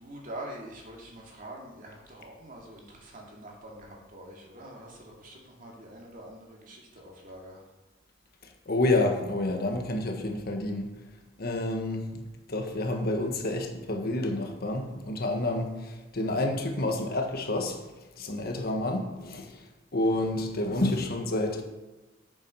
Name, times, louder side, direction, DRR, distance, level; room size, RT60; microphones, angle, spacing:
voice 1, 0.0-7.6, right 1 dB, 45° right, -1 dB, 2.4 m, -45 dB
voice 2, 8.7-10.9 11.4-12.2 12.5-15.7 16.1-17.8 18.2-19.5 19.9-21.6, left 2 dB, 50° left, 3 dB, 1.4 m, -29 dB
8.8 x 7.4 x 5.5 m, 1.1 s
head